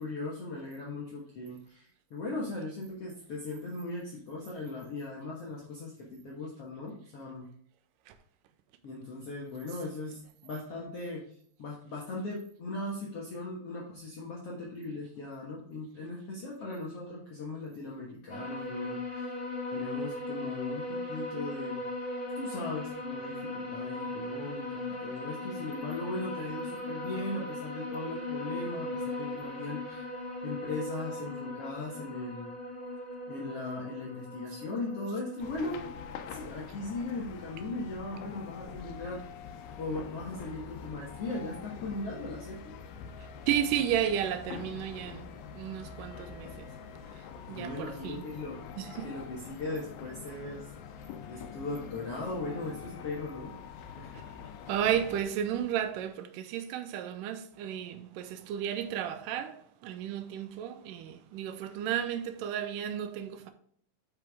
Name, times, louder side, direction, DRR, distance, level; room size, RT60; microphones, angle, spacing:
voice 1, 0.0-7.5 8.8-11.2 11.6-19.3 19.7-21.8 22.4-30.0 30.4-32.5 33.3-35.9 36.3-39.2 39.8-42.6 47.5-48.6 49.0-51.0 51.3-53.5 54.0-54.1, left 2 dB, 50° left, 2.1 m, -38 dB
sound 1, 18.3-36.0, left 2 dB, 20° left, 3.1 m, -38 dB
sound 2, 35.4-55.2, left 7 dB, 90° left, 2.6 m, -45 dB
voice 2, 43.5-46.8 47.0-48.3 48.8-49.1 54.1-54.2 54.7-63.5, right 10 dB, 75° right, 2.3 m, -33 dB
9.0 x 5.8 x 3.6 m
omnidirectional pair, 4.1 m